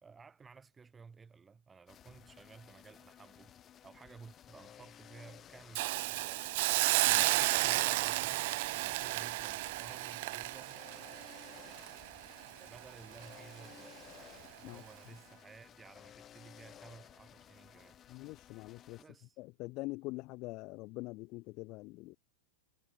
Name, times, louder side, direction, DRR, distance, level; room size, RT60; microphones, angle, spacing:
voice 1, 0.0-6.5 7.1-10.9 12.5-14.2 14.6-18.0 19.0-19.4, right 5 dB, 15° right, 2.4 m, -56 dB
sound 1, 1.9-19.0, left 10 dB, 30° left, 3.7 m, -57 dB
Hiss, 5.8-12.8 13.2-13.3, right 21 dB, 60° right, 0.4 m, -32 dB
voice 2, 18.1-19.0 19.4-22.2, left 23 dB, 50° left, 1.4 m, -44 dB
hypercardioid pair, 105°, 0 cm